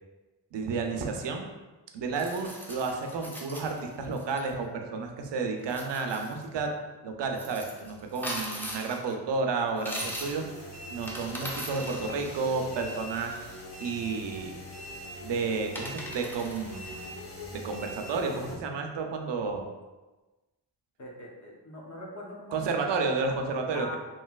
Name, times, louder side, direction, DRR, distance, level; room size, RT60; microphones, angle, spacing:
voice 1, 0.5-1.5 1.9-6.7 7.0-10.4 10.9-13.4 13.8-14.6 15.2-17.0 17.6-19.6 22.5-24.0, right 4 dB, 70° right, 3 dB, 0.5 m, -31 dB
sound 1, 2.2-4.4 5.6-6.4 7.3-9.1 9.7-10.5 10.9-13.6 15.1-15.2 15.8-17.1, equal, 5° left, 0.4 m, -40 dB
sound 2, 10.0-18.6, left 1 dB, 85° left, 1.2 m, -42 dB
voice 2, 21.0-22.6 23.7-24.0, left 2 dB, 40° left, -1 dB, 0.7 m, -41 dB
3.1 x 2.7 x 2.3 m, 1.2 s
wide cardioid pair, 90°, 44 cm